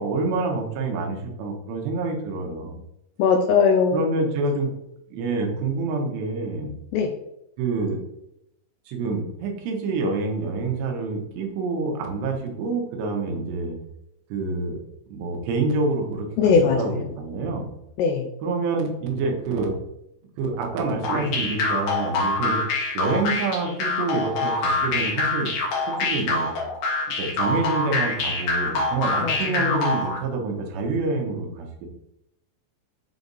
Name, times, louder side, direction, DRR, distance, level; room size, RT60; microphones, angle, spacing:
voice 1, 0.0-2.7 3.9-4.7 5.1-6.7 7.6-8.0 8.9-13.8 14.3-14.8 15.1-17.7 18.4-19.7 20.4-22.6 22.9-25.5 25.9-26.5 27.2-31.9, right 3 dB, 75° right, 2 dB, 3.1 m, -27 dB
voice 2, 3.2-4.0 6.9-7.1 16.4-17.0 18.0-18.3 29.2-29.4, left 5 dB, 80° left, 3 dB, 2.5 m, -19 dB
sound 1, 21.0-30.2, left 3 dB, 60° left, 2.0 m, -25 dB
8.1 x 3.3 x 4.0 m, 0.81 s
omnidirectional pair, 5.2 m